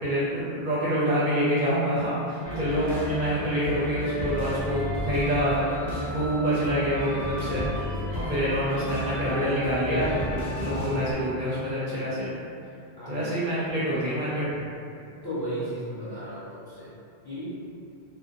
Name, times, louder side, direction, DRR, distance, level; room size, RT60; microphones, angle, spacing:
voice 1, 0.0-7.7 8.1-12.3 13.1-14.5, equal, 60° right, -9 dB, 0.6 m, -26 dB
sound 1, 2.4-11.1, equal, 65° left, 0.9 m, -33 dB
voice 2, 13.0-13.3 15.2-16.9 17.2-17.5, right 1 dB, 30° left, -12 dB, 0.5 m, -34 dB
2.4 x 2.0 x 2.5 m, 2.5 s
omnidirectional pair, 1.1 m